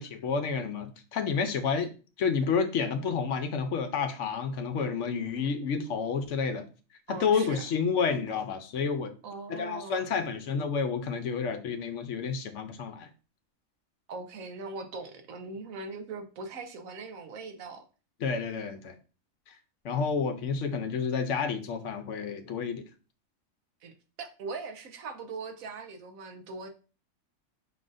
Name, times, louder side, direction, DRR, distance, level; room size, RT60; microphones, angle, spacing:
voice 1, 0.0-1.9 2.2-6.7 7.1-9.1 9.5-13.1 18.2-18.9 19.5-19.6 19.8-22.8, left 5 dB, 70° left, 0.9 m, -30 dB
voice 2, 7.1-7.6 9.2-10.1 14.1-17.8 23.8-26.7, right 4 dB, 75° right, 1.1 m, -40 dB
5.3 x 3.8 x 2.5 m
omnidirectional pair, 1.5 m